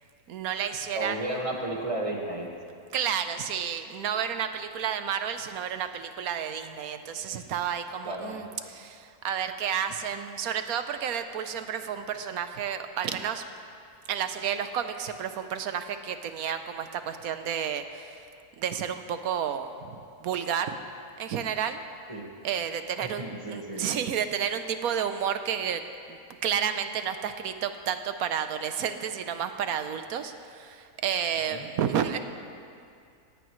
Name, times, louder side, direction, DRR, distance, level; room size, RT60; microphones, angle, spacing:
voice 1, 0.3-1.4 2.9-13.4 14.1-18.3 18.6-20.8 21.2-21.8 22.4-23.2 23.5-25.8 26.1-32.2, right 8 dB, 70° right, 9 dB, 1.2 m, -31 dB
voice 2, 0.9-2.5 8.0-8.3 22.1-22.3 23.0-23.9 31.5-31.7, right 1 dB, 20° right, 0 dB, 1.5 m, -33 dB
17.5 x 16.5 x 3.2 m, 2.4 s
omnidirectional pair, 1.7 m